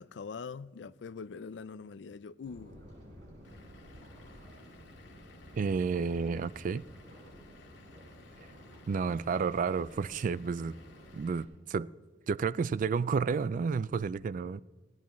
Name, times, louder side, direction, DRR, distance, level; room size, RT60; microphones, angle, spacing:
voice 1, 0.0-2.8 9.3-9.4, left 5 dB, 70° left, 0.4 m, -43 dB
sound 1, 2.4-11.3, equal, 85° right, 5.0 m, -52 dB
Vehicle / Engine, 3.4-11.4, left 3 dB, 85° left, 1.7 m, -58 dB
voice 2, 5.6-6.8 8.9-10.7 11.1-11.9 12.3-14.6, right 5 dB, 45° right, 0.3 m, -31 dB
18.5 x 17.0 x 3.1 m
head